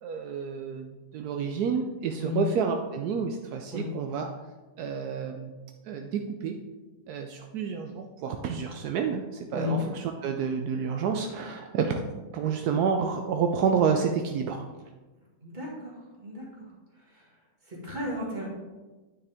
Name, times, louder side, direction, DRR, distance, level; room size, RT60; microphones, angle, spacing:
voice 1, 0.0-4.3 4.8-5.5 5.9-6.6 7.1-14.6, right 6 dB, 80° right, 4 dB, 1.1 m, -29 dB
voice 2, 15.4-16.4 17.1-17.2 17.7-18.5, left 3 dB, 30° right, -5 dB, 2.2 m, -34 dB
9.4 x 5.9 x 3.5 m, 1.2 s
omnidirectional pair, 1.7 m